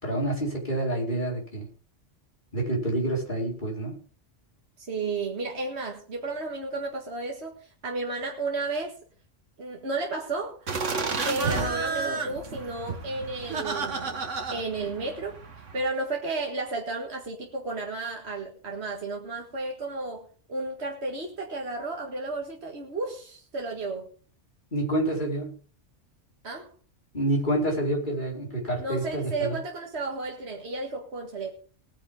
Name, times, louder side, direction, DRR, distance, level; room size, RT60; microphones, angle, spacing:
voice 1, 0.0-1.7 2.5-3.9 24.7-25.6 27.1-29.6, right 1 dB, 40° left, -2 dB, 5.4 m, -28 dB
voice 2, 4.8-9.0 9.6-10.7 11.2-14.2 14.5-15.4 15.7-24.1 26.4-26.7 28.8-31.5, right 3 dB, 60° right, 0 dB, 2.1 m, -33 dB
sound 1, 10.7-15.8, right 4 dB, 75° right, 2.0 m, -31 dB
19.5 x 10.0 x 3.8 m, 0.41 s
omnidirectional pair, 1.3 m